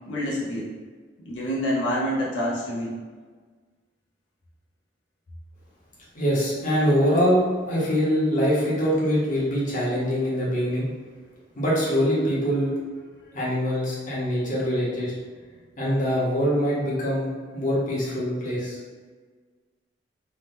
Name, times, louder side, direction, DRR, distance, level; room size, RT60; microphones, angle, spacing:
voice 1, 0.1-0.7 1.3-2.9, equal, 80° left, -6 dB, 0.6 m, -27 dB
voice 2, 6.1-7.4 7.7-10.9 11.6-12.7 13.3-15.1 15.8-18.8, equal, 40° left, -7 dB, 0.9 m, -23 dB
2.9 x 2.1 x 3.4 m, 1.5 s
head